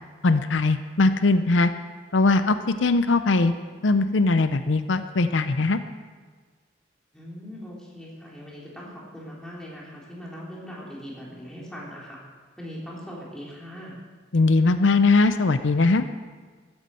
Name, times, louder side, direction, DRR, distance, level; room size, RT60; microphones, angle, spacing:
voice 1, 0.2-1.7 2.1-3.5 3.8-5.8 14.3-16.1, left 3 dB, 85° left, 10 dB, 0.6 m, -20 dB
voice 2, 7.1-12.2 12.6-14.0, equal, 5° left, -5 dB, 3.6 m, -40 dB
13.5 x 9.9 x 7.7 m, 1.5 s
head